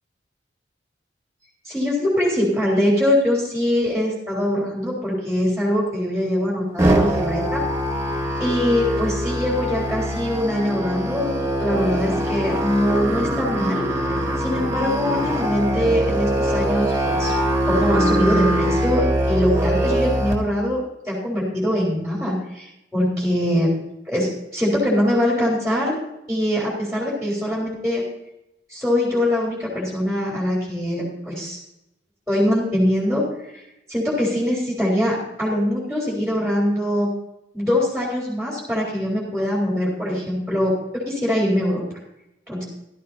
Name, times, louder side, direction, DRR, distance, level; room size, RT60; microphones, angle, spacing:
voice 1, 1.6-7.6 8.4-11.3 11.6-13.9 14.4-17.3 17.7-23.7 24.1-25.9 26.3-28.0 28.7-31.6 32.3-33.2 33.5-33.6 33.9-37.1 37.5-41.8 42.5-42.7, left 1 dB, ahead, -5 dB, 3.8 m, -22 dB
Musical instrument, 6.8-20.3, right 1 dB, 15° right, 2.0 m, -22 dB
15.0 x 13.5 x 2.8 m, 0.85 s
head